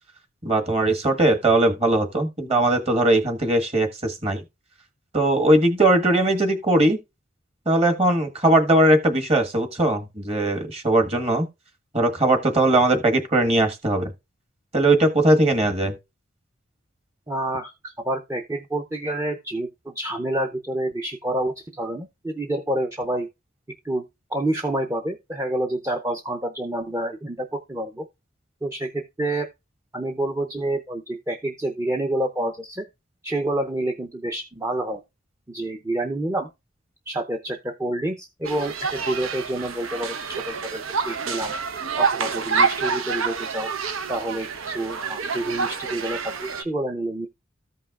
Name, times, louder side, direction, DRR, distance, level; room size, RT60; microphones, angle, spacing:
voice 1, 0.4-4.4 5.1-7.0 7.7-11.5 11.9-14.1 14.7-15.9, right 1 dB, 30° right, 1.4 m, -20 dB
voice 2, 17.3-23.3 23.8-24.1 24.3-28.1 28.6-29.5 29.9-32.9 33.2-35.0 35.5-36.5 37.1-41.5 42.0-43.7 44.1-47.3, right 1 dB, 15° right, 0.6 m, -28 dB
sound 1, 38.4-46.6, right 5 dB, 85° right, 0.9 m, -27 dB
14.5 x 5.4 x 2.4 m
head